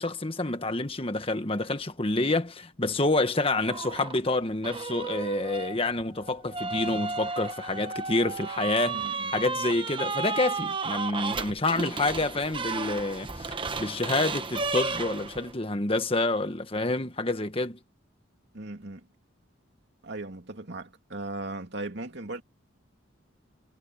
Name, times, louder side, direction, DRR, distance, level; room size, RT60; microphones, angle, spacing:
voice 1, 0.0-9.0 9.3-17.8, left 2 dB, 30° left, 1.5 m, -28 dB
sound 1, 3.6-4.2 4.6-15.5, right 4 dB, 25° right, 1.1 m, -33 dB
voice 2, 8.9-9.2 18.5-19.0 20.0-22.4, right 2 dB, 55° right, 2.9 m, -37 dB
head